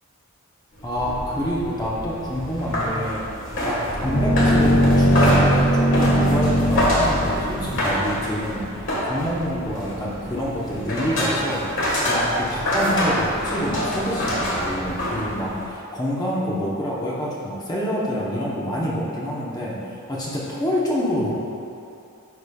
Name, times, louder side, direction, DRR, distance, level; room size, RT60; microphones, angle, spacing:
sound 1, 0.8-15.7, equal, 60° left, 1.4 m, -26 dB
voice 1, 0.8-3.2 3.6-21.3, equal, 20° left, -6 dB, 0.7 m, -27 dB
sound 2, 3.9-8.2, equal, 80° left, 1.2 m, -20 dB
9.5 x 5.0 x 2.2 m, 2.7 s
head